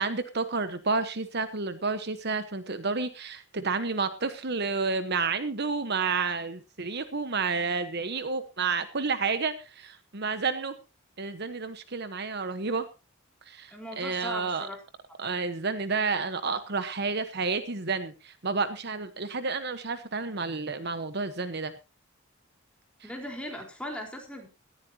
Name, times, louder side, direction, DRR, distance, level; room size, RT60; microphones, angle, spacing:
voice 1, 0.0-10.7 11.2-12.9 13.4-14.7 15.2-21.7 23.0-23.1, right 4 dB, 50° right, 10 dB, 1.2 m, -30 dB
voice 2, 13.7-14.8 23.0-24.5, left 1 dB, 5° left, 1 dB, 4.3 m, -38 dB
18.0 x 14.5 x 2.9 m, 0.30 s
head